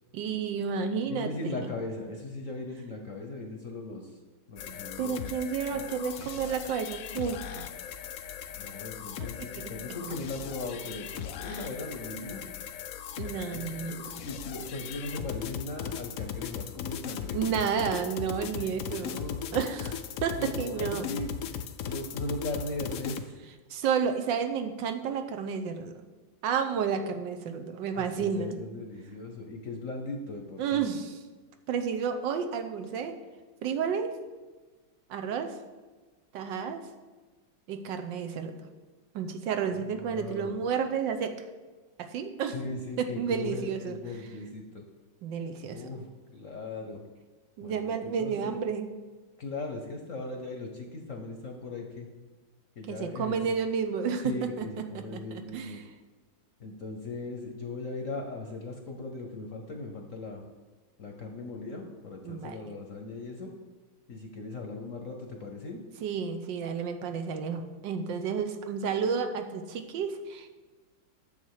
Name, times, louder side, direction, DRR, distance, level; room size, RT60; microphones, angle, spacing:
voice 1, 0.1-1.7 5.0-7.7 9.4-9.7 11.5-11.6 13.2-14.1 17.3-19.2 19.5-21.1 23.7-26.1 26.4-28.6 30.6-31.1 31.7-33.2 33.6-34.2 35.1-35.6 36.3-36.8 37.7-38.6 39.1-41.4 42.0-42.6 43.0-44.0 45.2-45.8 47.6-48.9 52.9-54.7 54.9-55.8 62.2-62.6 66.0-70.5, right 6 dB, 75° right, 7 dB, 1.4 m, -31 dB
voice 2, 1.1-4.2 4.5-5.2 5.7-5.8 8.5-12.5 13.5-17.8 18.5-19.5 20.4-23.3 27.9-30.9 39.8-40.5 42.5-44.8 45.7-47.0 47.6-48.6 49.4-52.1 52.8-53.5 54.2-55.8 56.6-60.4 61.0-63.5 64.1-65.8, left 2 dB, 55° left, 2 dB, 1.0 m, -38 dB
sound 1, 4.6-23.2, left 9 dB, 80° left, 0.7 m, -38 dB
9.7 x 7.3 x 4.7 m, 1.3 s
omnidirectional pair, 2.1 m